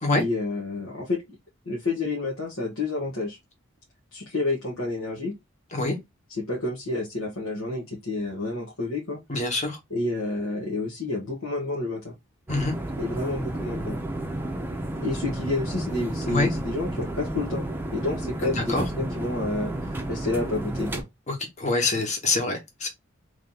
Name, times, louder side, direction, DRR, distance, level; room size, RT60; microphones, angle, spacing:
voice 1, 0.1-1.2 1.7-3.4 4.1-5.3 6.4-9.2 9.9-12.1 13.0-14.0 15.0-21.1, left 2 dB, 85° left, 1.2 m, -29 dB
voice 2, 9.3-9.8 12.5-12.7 16.3-16.5 18.4-18.9 21.3-22.9, left 2 dB, 35° left, 1.2 m, -25 dB
sound 1, 12.5-21.0, right 1 dB, 10° right, 0.6 m, -32 dB
3.3 x 2.8 x 3.9 m
head